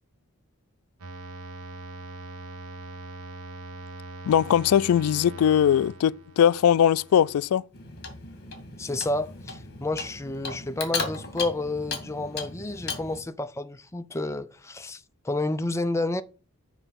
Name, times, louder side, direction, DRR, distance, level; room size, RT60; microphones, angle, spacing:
sound 1, 1.0-7.5, right 2 dB, 80° right, 1.5 m, -42 dB
voice 1, 4.3-7.6, left 9 dB, 75° left, 0.3 m, -20 dB
Clock, 7.7-13.2, left 4 dB, 45° left, 2.0 m, -36 dB
voice 2, 8.8-16.2, left 2 dB, 15° left, 0.4 m, -30 dB
7.0 x 5.3 x 5.8 m
head